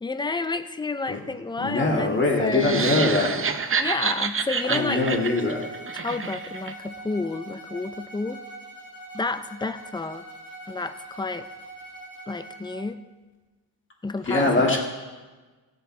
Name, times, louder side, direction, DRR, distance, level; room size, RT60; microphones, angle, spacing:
voice 1, 0.0-3.1 3.7-5.0 5.9-8.4 9.1-10.3 10.7-11.5 12.3-13.1 14.0-14.8, left 3 dB, 10° left, 11 dB, 0.4 m, -30 dB
voice 2, 1.6-3.4 4.7-5.7 14.2-14.8, left 2 dB, 30° left, 0 dB, 2.0 m, -22 dB
sound 1, 2.5-6.7, right 5 dB, 35° right, 0.6 m, -28 dB
Bowed string instrument, 4.6-12.9, right 2 dB, 60° left, 2.0 m, -42 dB
16.5 x 7.0 x 4.3 m, 1.3 s
wide cardioid pair, 150°, 40 cm